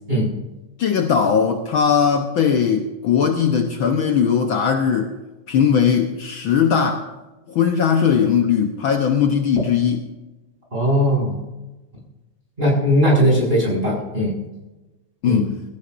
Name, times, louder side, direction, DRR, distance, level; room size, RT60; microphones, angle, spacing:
voice 1, 0.8-5.1 5.5-7.0 7.5-10.0 15.2-15.5, left 7 dB, 75° left, 3 dB, 1.1 m, -19 dB
voice 2, 10.7-11.4 12.6-14.3 15.2-15.4, equal, 15° right, -3 dB, 6.2 m, -18 dB
23.0 x 14.0 x 2.6 m, 1.1 s
omnidirectional pair, 3.6 m